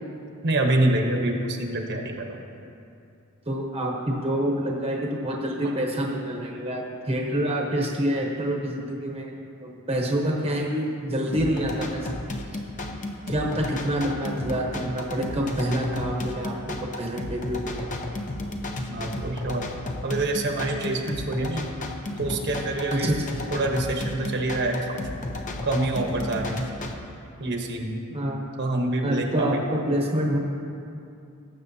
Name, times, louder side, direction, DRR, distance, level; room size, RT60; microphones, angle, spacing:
voice 1, 0.4-2.4 5.6-5.7 18.9-19.7 20.0-21.7 22.2-23.1 23.5-25.0 25.6-26.6 27.4-28.0 28.6-29.6, right 2 dB, 50° right, 1 dB, 1.0 m, -26 dB
voice 2, 3.5-9.3 9.6-12.2 13.3-17.8 22.9-23.3 28.1-28.4 29.0-30.4, right 1 dB, 25° right, -1 dB, 1.0 m, -27 dB
sound 1, 11.3-26.9, left 2 dB, 35° left, 0.7 m, -33 dB
18.5 x 7.9 x 2.8 m, 2.6 s
head